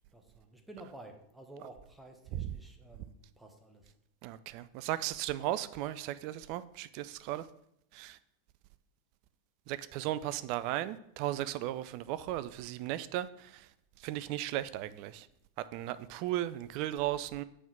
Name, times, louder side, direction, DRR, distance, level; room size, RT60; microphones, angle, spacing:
voice 1, 0.0-4.0 9.9-10.2, right 2 dB, 5° right, 2 dB, 1.0 m, -52 dB
voice 2, 4.2-7.5 7.9-8.2 9.7-15.3 15.6-17.4, right 13 dB, 45° right, 15 dB, 0.3 m, -36 dB
7.0 x 3.7 x 5.8 m, 0.75 s
figure-of-eight pair, 90°, 0 cm